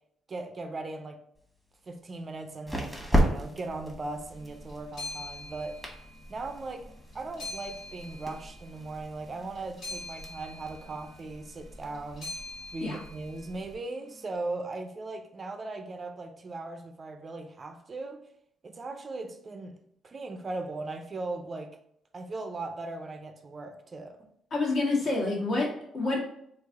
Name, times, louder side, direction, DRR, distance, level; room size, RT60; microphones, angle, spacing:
voice 1, 0.3-1.2 1.9-5.8 6.3-6.9 7.1-12.3 12.7-18.3 18.6-19.8 20.0-21.8 22.1-24.3, right 2 dB, 35° right, 0.4 m, -38 dB
sound 1, 1.3-13.7, equal, 5° left, 1.1 m, -36 dB
sound 2, 4.3-14.3, left 2 dB, 70° left, 1.4 m, -44 dB
voice 2, 24.5-26.2, left 2 dB, 55° left, 1.4 m, -28 dB
3.2 x 2.4 x 3.5 m
cardioid pair, 90°, 0 cm